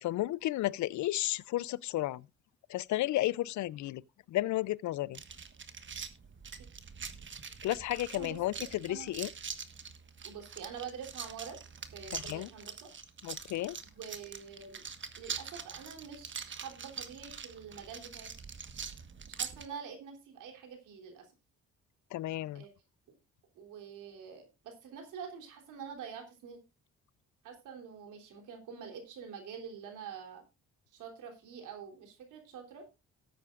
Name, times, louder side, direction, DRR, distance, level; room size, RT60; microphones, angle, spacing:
voice 1, 0.0-2.2 2.7-4.0 4.3-5.2 7.6-9.3 12.1-12.5 13.2-13.8 22.1-22.6, left 15 dB, 70° left, 0.5 m, -33 dB
sound 1, 5.1-19.7, right 6 dB, 40° right, 1.4 m, -44 dB
voice 2, 8.1-9.1 10.2-11.6 11.9-12.9 13.9-14.8 15.2-18.3 19.3-21.3 22.5-22.7 23.5-26.6 27.4-30.4 30.9-32.9, right 7 dB, 85° right, 3.3 m, -46 dB
18.0 x 8.6 x 2.4 m
cardioid pair, 90°, 30 cm